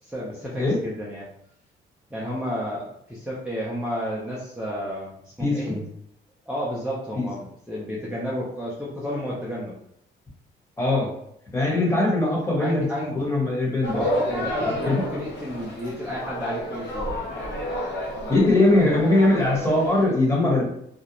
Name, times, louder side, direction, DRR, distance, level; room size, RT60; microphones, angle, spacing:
voice 1, 0.0-1.3 2.1-5.8 6.5-9.8 12.6-13.2 13.9-17.2, equal, 5° right, -5 dB, 0.5 m, -31 dB
voice 2, 5.4-5.8 7.1-7.3 10.8-11.1 11.5-12.8 13.1-14.0 14.6-15.0 18.3-20.6, left 2 dB, 15° left, -3 dB, 1.1 m, -21 dB
sound 1, 13.8-20.1, equal, 55° left, 1.0 m, -31 dB
2.4 x 2.0 x 2.9 m, 0.73 s
cardioid pair, 90°, 20 cm